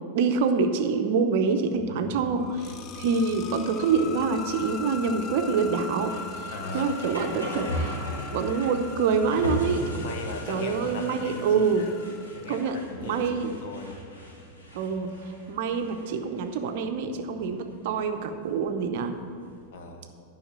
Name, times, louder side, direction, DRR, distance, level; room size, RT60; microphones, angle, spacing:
voice 1, 0.1-10.1 10.5-11.9 12.5-13.5 14.7-19.2, right 5 dB, 50° right, 7 dB, 0.8 m, -26 dB
sound 1, 1.7-19.7, equal, 75° left, 2.8 m, -39 dB
voice 2, 1.9-2.2 6.5-7.0 10.0-11.9 12.3-14.0 19.7-20.1, left 3 dB, 50° left, 4 dB, 1.3 m, -39 dB
sound 2, 2.2-13.0, left 6 dB, 35° left, 0.6 m, -41 dB
11.0 x 5.7 x 7.4 m, 2.4 s
figure-of-eight pair, 90°, 0 cm